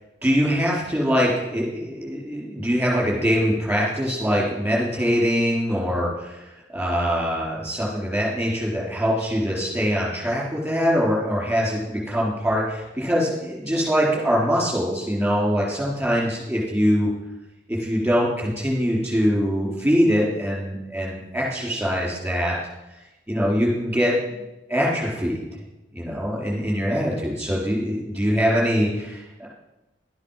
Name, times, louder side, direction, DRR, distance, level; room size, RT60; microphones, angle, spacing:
voice 1, 0.2-6.4 6.7-17.1 17.7-22.6 23.3-24.1 24.7-25.4 25.9-29.5, equal, 5° right, -5 dB, 4.3 m, -23 dB
12.5 x 9.7 x 5.9 m, 1.0 s
head